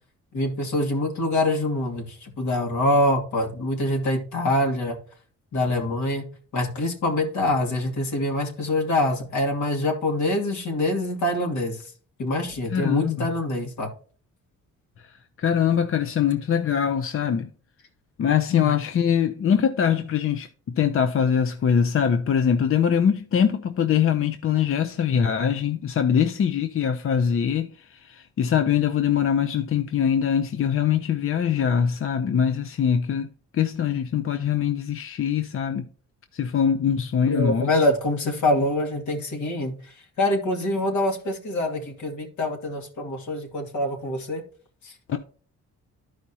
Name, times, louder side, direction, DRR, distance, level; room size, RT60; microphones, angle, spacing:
voice 1, 0.3-5.0 5.5-6.2 6.5-11.8 12.2-13.9 18.5-18.7 37.3-44.4 44.8-45.2, left 1 dB, 70° left, 2.4 m, -25 dB
voice 2, 12.7-13.3 15.0-17.5 18.2-20.5 20.7-33.3 33.5-35.8 36.3-37.8 45.1-45.2, left 8 dB, 45° left, 0.6 m, -23 dB
12.5 x 5.0 x 2.8 m
cardioid pair, 90°, 30 cm